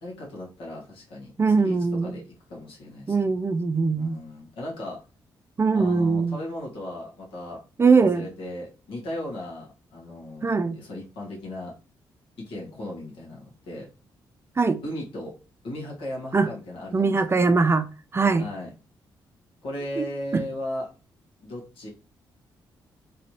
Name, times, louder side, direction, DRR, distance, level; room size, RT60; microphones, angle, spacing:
voice 1, 0.0-1.3 1.6-1.7 2.0-3.2 4.0-5.0 5.7-7.6 8.0-11.7 12.4-13.9 14.8-15.3 15.6-17.5 18.4-18.7 19.6-20.9 21.4-21.9, left 1 dB, 85° left, 1.6 m, -36 dB
voice 2, 1.4-2.2 3.1-4.2 5.6-6.4 7.8-8.3 10.4-10.8 14.6-14.8 16.3-16.5 16.9-17.8 18.1-18.5 20.0-20.1 20.3-20.4, right 4 dB, 30° right, 0.4 m, -21 dB
3.3 x 2.8 x 3.1 m
cardioid pair, 65°, 9 cm